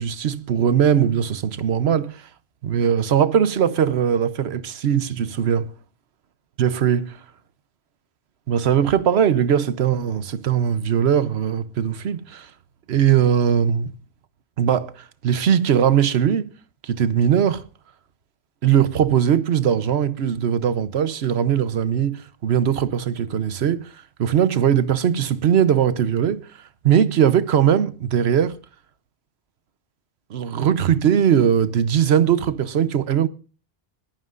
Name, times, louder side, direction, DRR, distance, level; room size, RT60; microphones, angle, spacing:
voice 1, 0.0-2.3 2.6-5.7 6.6-7.2 8.5-12.5 12.9-13.9 14.6-16.5 16.8-17.6 18.6-23.9 24.2-26.5 26.8-28.6 30.3-33.3, right 8 dB, 85° right, 1.1 m, -20 dB
20.5 x 15.0 x 2.5 m
omnidirectional pair, 1.1 m